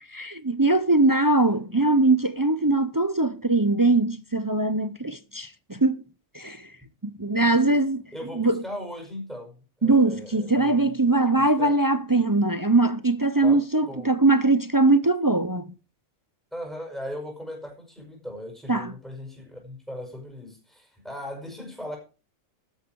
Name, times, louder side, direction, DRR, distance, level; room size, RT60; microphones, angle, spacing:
voice 1, 0.1-6.0 6.3-6.7 7.0-8.0 8.3-8.6 9.8-15.7 18.7-18.9, right 2 dB, 25° right, 0.4 m, -21 dB
voice 2, 8.1-9.5 9.8-10.8 11.1-11.7 13.4-14.1 16.5-22.0, left 1 dB, ahead, 6.0 m, -38 dB
13.0 x 10.5 x 4.7 m
omnidirectional pair, 1.4 m